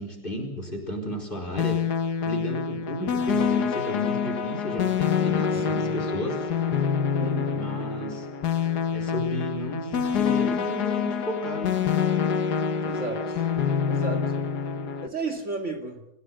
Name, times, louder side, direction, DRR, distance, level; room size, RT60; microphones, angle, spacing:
voice 1, 0.0-1.8 2.2-6.5 7.5-8.3 8.9-11.8, left 1 dB, 30° left, 3 dB, 4.8 m, -33 dB
sound 1, 1.6-15.1, left 7 dB, 85° left, 1.8 m, -26 dB
voice 2, 5.5-5.9 7.2-7.6 12.8-13.4 13.9-14.3 15.0-16.0, right 3 dB, 45° right, 4 dB, 2.8 m, -34 dB
26.0 x 16.0 x 7.8 m, 0.82 s
omnidirectional pair, 1.7 m